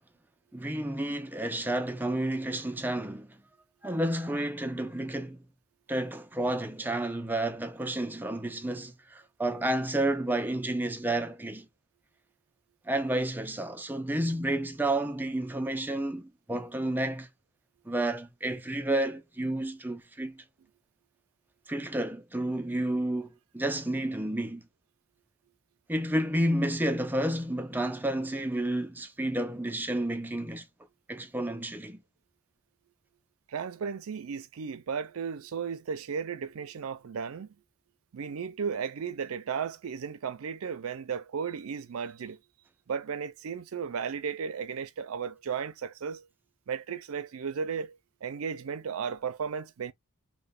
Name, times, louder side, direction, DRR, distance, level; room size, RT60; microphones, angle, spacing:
voice 1, 0.5-3.4 3.8-5.4 5.9-11.7 12.8-17.3 17.9-20.4 21.7-24.6 25.9-30.7 31.1-32.0, right 1 dB, 10° right, 0.4 m, -31 dB
voice 2, 33.5-37.5 38.1-42.4 42.9-46.3 46.7-49.9, right 6 dB, 80° right, 0.5 m, -35 dB
3.0 x 2.1 x 2.2 m
head